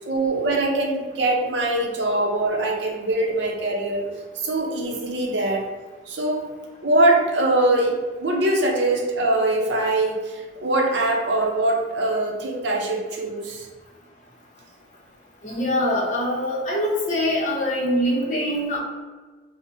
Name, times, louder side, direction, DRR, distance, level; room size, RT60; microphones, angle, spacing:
voice 1, 0.1-4.0 4.4-5.7 6.1-6.4 6.8-13.7, right 2 dB, 75° right, 0 dB, 0.6 m, -22 dB
voice 2, 15.4-18.8, left 1 dB, 40° left, -3 dB, 0.7 m, -23 dB
4.1 x 2.1 x 2.6 m, 1.3 s
head